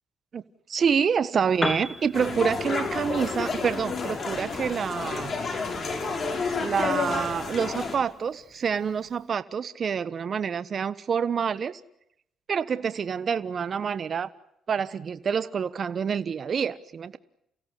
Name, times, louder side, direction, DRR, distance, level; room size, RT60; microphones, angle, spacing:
voice 1, 0.7-5.4 6.6-11.8 12.5-14.3 14.7-17.2, right 6 dB, 50° right, 15 dB, 1.2 m, -27 dB
Piano, 1.5-9.3, left 1 dB, 15° left, 2.8 m, -40 dB
sound 1, 2.1-8.0, left 4 dB, 40° left, 6.2 m, -30 dB
29.5 x 16.5 x 9.8 m, 0.77 s
cardioid pair, 90°, 0 cm